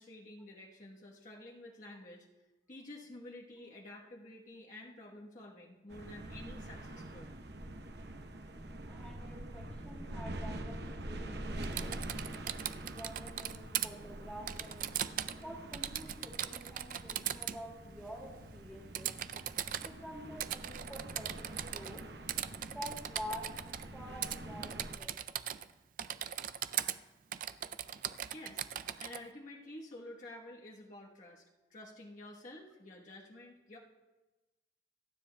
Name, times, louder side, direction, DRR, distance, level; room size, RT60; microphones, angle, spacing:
voice 1, 0.0-2.3 2.7-7.3 10.7-10.8 28.2-31.4 31.7-33.8, left 1 dB, 45° left, -3 dB, 1.2 m, -50 dB
sound 1, 5.9-25.0, right 1 dB, 65° right, 0.9 m, -45 dB
voice 2, 8.8-11.9 12.8-14.9 15.4-19.1 19.8-22.0 22.7-23.5 23.9-25.1, equal, ahead, -7 dB, 2.1 m, -48 dB
Typing, 11.6-13.9 14.5-15.4 15.7-17.6 18.9-19.9 20.4-22.0 22.3-23.9 24.2-24.4 24.6-25.7 26.0-27.0 27.3-29.2, right 11 dB, 50° right, 0.4 m, -39 dB
28.5 x 9.9 x 2.2 m, 1.1 s
head